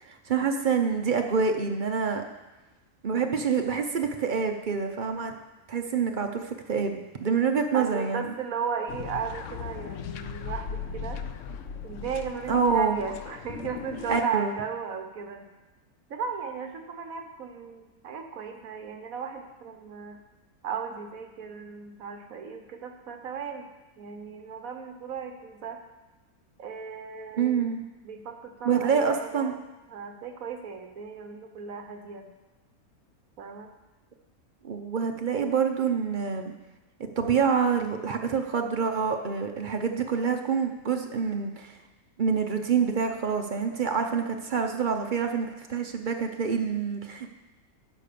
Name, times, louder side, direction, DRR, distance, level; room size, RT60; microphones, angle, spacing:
voice 1, 0.0-2.2 3.0-5.4 5.7-8.3 12.5-13.0 14.1-14.5 27.4-27.8 28.6-29.5 34.6-36.5 37.0-41.8 42.2-47.3, right 6 dB, 50° right, 5 dB, 0.6 m, -27 dB
voice 2, 7.7-11.2 11.8-15.5 16.1-20.2 20.6-23.7 24.0-25.8 26.6-27.6 28.0-29.5 29.9-32.3 33.4-33.7, right 6 dB, 65° right, 5 dB, 1.3 m, -36 dB
sound 1, 8.9-14.2, left 7 dB, 65° left, 0.8 m, -38 dB
10.5 x 5.3 x 6.7 m, 1.1 s
omnidirectional pair, 1.6 m